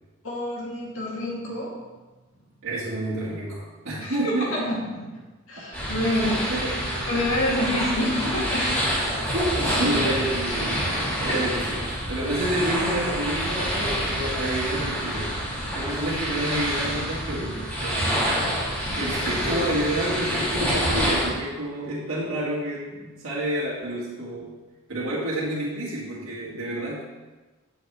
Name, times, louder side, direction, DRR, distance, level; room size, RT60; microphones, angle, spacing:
voice 1, 0.2-1.8 4.0-5.2 5.5-6.6 7.1-8.7 11.3-11.4, left 1 dB, 65° left, -5 dB, 2.8 m, -28 dB
voice 2, 2.6-4.5 6.0-7.0 9.2-15.4 15.7-18.2 19.0-24.5 24.9-27.0, right 1 dB, 70° right, -8 dB, 2.0 m, -29 dB
sound 1, 5.7-21.3, equal, 5° left, 2.8 m, -27 dB
Bowed string instrument, 6.3-10.1 10.4-10.5, left 3 dB, 45° right, 1.1 m, -44 dB
11.0 x 6.9 x 3.4 m, 1.2 s
head